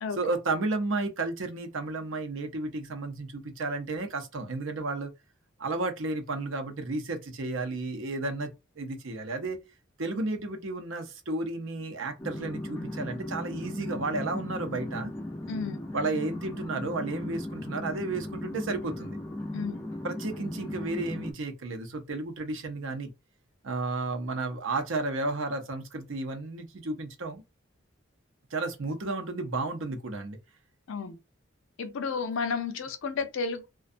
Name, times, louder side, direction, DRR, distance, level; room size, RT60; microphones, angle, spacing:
voice 1, 0.2-5.1 5.6-8.5 8.8-9.6 10.0-15.1 15.9-19.2 20.0-23.1 23.6-27.4 28.5-30.4, right 3 dB, 75° right, 0.6 m, -32 dB
sound 1, 12.2-21.3, left 1 dB, 10° left, 0.4 m, -37 dB
voice 2, 15.5-15.8 19.5-19.8 30.9-31.2 31.8-33.7, left 5 dB, 75° left, 0.5 m, -32 dB
2.5 x 2.3 x 2.5 m
head